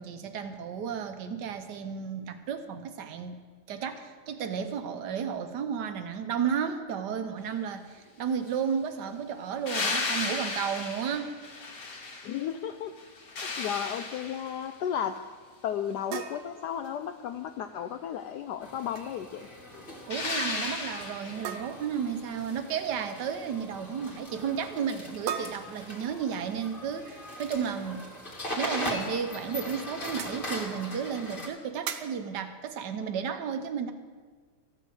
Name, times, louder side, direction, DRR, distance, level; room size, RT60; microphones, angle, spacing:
voice 1, 0.0-3.4 3.7-11.3 20.1-28.1 28.6-33.9, right 7 dB, 60° right, 8 dB, 1.3 m, -33 dB
sound 1, 9.7-12.6 13.0-14.7 20.1-21.5 24.1-24.2, left 3 dB, 45° left, 1.7 m, -34 dB
voice 2, 12.2-12.9 13.6-15.2 15.6-19.5, left 9 dB, 85° left, 7 dB, 0.9 m, -34 dB
sound 2, 16.1-17.5 18.7-19.1 19.4-19.7 19.9-20.0 21.4-22.1 25.3-26.4 28.5-28.6 29.1-29.2 30.1-30.4 31.9-32.3, right 8 dB, 90° right, 1.6 m, -39 dB
sound 3, 18.6-31.5, left 1 dB, 25° left, 1.8 m, -40 dB
14.5 x 6.2 x 7.9 m, 1.5 s
omnidirectional pair, 2.3 m